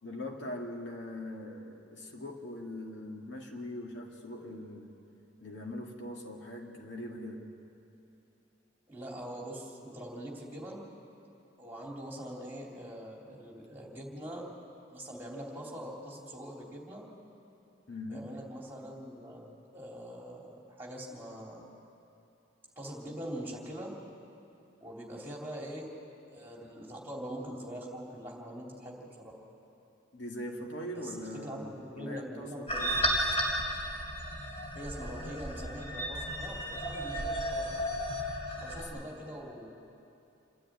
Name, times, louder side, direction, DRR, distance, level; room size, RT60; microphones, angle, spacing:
voice 1, 0.0-4.9 5.4-7.4 17.9-18.3 30.1-33.1 38.7-39.1, left 1 dB, 70° left, 0 dB, 2.1 m, -41 dB
voice 2, 8.9-10.8 11.6-14.4 14.9-17.0 18.1-19.4 19.7-21.6 22.7-23.9 24.8-25.9 26.3-29.3 30.9-32.8 34.7-37.7 38.6-39.7, equal, 10° right, -2 dB, 3.1 m, -43 dB
sound 1, 32.7-38.8, equal, 30° left, 3.0 m, -33 dB
28.0 x 10.5 x 9.4 m, 2.8 s
head